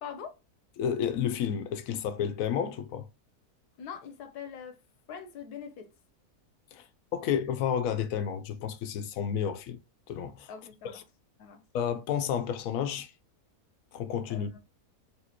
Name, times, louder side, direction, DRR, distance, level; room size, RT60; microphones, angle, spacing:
voice 1, 0.0-0.3 3.8-4.8 5.1-5.9 10.5-11.0 11.4-11.6 14.3-14.6, left 7 dB, 85° left, 1.3 m, -43 dB
voice 2, 0.8-3.1 6.7-6.8 7.1-9.8 10.1-10.5 10.8-11.0 11.7-13.1 13.9-14.6, left 8 dB, 70° left, 0.9 m, -31 dB
4.3 x 2.8 x 2.8 m
omnidirectional pair, 1.6 m